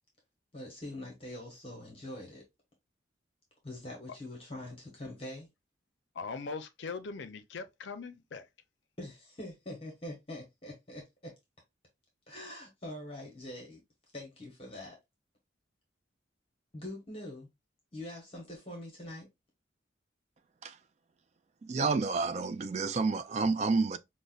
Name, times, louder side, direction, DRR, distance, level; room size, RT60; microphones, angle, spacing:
voice 1, 0.5-2.4 3.6-5.5 9.0-11.3 12.3-13.8 14.1-15.0 16.7-17.5 17.9-19.3, left 1 dB, 30° left, 0.9 m, -44 dB
voice 2, 6.1-8.5, left 4 dB, 70° left, 0.5 m, -40 dB
voice 3, 21.6-24.0, right 4 dB, 35° right, 0.3 m, -29 dB
5.2 x 2.1 x 2.4 m
head